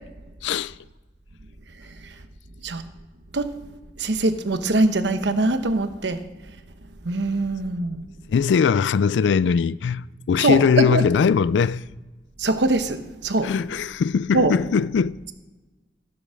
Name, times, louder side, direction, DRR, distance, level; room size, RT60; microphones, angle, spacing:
voice 1, 0.4-0.7 8.3-11.8 13.4-15.2, left 6 dB, 75° left, 0.3 m, -20 dB
voice 2, 1.8-2.1 2.6-2.8 3.3-3.5 4.0-6.2 7.0-8.0 10.4-11.1 12.4-13.5 14.3-14.5, right 2 dB, 70° right, 1.0 m, -23 dB
14.0 x 6.9 x 6.4 m
head